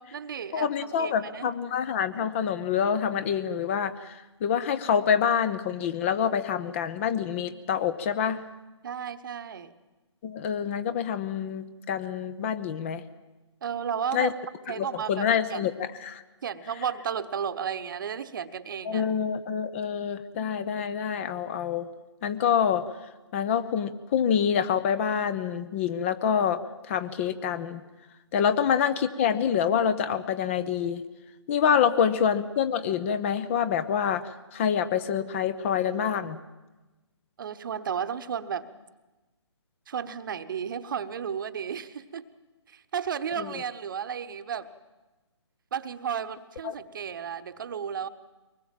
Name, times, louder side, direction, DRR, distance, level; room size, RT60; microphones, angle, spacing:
voice 1, 0.0-1.5 8.8-9.7 13.6-14.3 14.7-15.7 16.4-19.0 37.4-38.7 39.9-42.3 42.7-44.7 45.7-48.1, right 7 dB, 45° right, 12 dB, 1.1 m, -33 dB
voice 2, 0.5-8.4 10.2-13.0 14.1-14.3 14.8-16.2 18.8-21.9 22.2-22.8 23.3-27.8 28.3-31.0 31.5-36.4 43.4-43.5 46.6-46.7, left 8 dB, 25° left, 13 dB, 0.8 m, -26 dB
23.0 x 20.0 x 7.5 m, 1.1 s
figure-of-eight pair, 145°, 15 cm